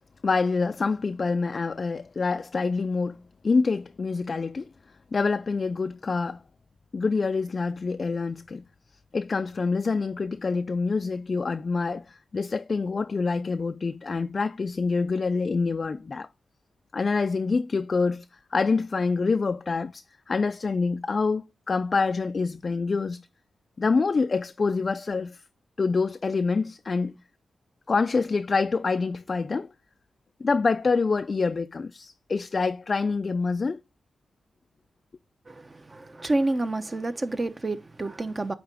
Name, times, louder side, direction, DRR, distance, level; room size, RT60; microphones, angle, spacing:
voice 1, 0.2-4.7 5.1-6.4 6.9-8.6 9.1-16.3 16.9-18.3 18.5-23.2 23.8-25.4 25.8-27.2 27.9-29.7 30.4-33.8, left 4 dB, 45° left, 0.3 m, -26 dB
voice 2, 35.5-38.5, right 2 dB, 30° right, 0.7 m, -29 dB
8.8 x 2.9 x 4.8 m
cardioid pair, 75°, 0 cm